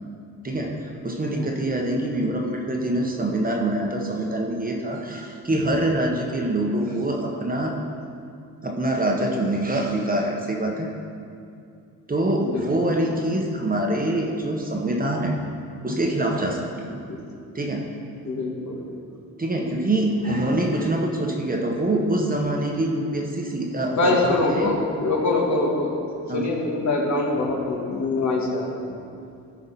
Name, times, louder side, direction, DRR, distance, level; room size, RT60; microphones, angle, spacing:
voice 1, 0.4-7.7 8.6-10.9 12.1-15.4 15.8-17.0 17.5-17.8 19.4-24.7 26.3-26.5, right 1 dB, 25° right, 0 dB, 1.3 m, -25 dB
voice 2, 1.3-1.6 12.4-12.6 17.1-17.2 18.3-18.9 23.9-25.9 26.2-29.0, left 2 dB, 50° left, -1 dB, 1.8 m, -24 dB
13.5 x 5.0 x 4.2 m, 2.4 s
supercardioid pair, 65°, 37 cm